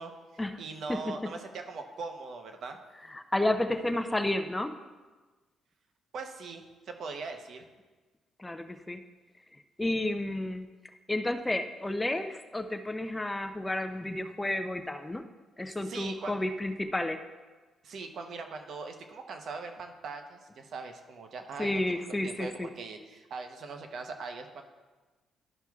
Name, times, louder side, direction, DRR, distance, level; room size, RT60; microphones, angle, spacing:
voice 1, 0.0-2.8 6.1-7.7 15.8-16.4 17.8-21.8 22.2-24.6, right 4 dB, 65° right, 5 dB, 0.8 m, -41 dB
voice 2, 3.1-4.7 8.4-9.0 9.8-10.7 11.1-15.2 15.6-17.2 21.6-22.7, left 1 dB, 15° left, 8 dB, 0.4 m, -31 dB
12.0 x 5.9 x 2.3 m, 1.3 s
cardioid pair, 90°, 0 cm